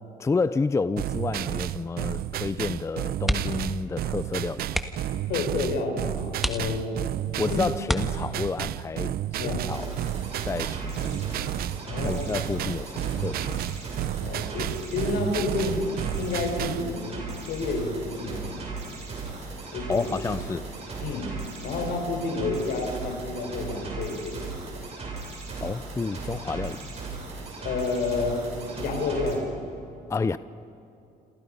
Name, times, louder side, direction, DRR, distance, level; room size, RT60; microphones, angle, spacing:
voice 1, 0.2-4.8 7.4-9.9 10.4-11.4 12.0-13.5 19.9-20.7 25.6-26.9 30.1-30.4, left 4 dB, 15° left, 0.5 m, -30 dB
sound 1, 1.0-16.9, right 13 dB, 65° right, 0.7 m, -31 dB
sound 2, 3.2-3.7 4.0-4.2 4.7-5.2 5.8-5.9 6.4-7.1 7.8-8.6 10.2-10.5 10.8-10.9, equal, ahead, 1.6 m, -30 dB
voice 2, 5.3-6.9 7.5-7.6 9.4-9.7 11.9-12.3 14.2-18.5 19.7-20.1 21.0-21.3 21.6-24.5 27.6-29.6, left 3 dB, 75° left, 5.2 m, -30 dB
sound 3, 9.7-29.4, right 3 dB, 40° right, 6.9 m, -37 dB
28.0 x 27.5 x 5.6 m
cardioid pair, 110°, 17 cm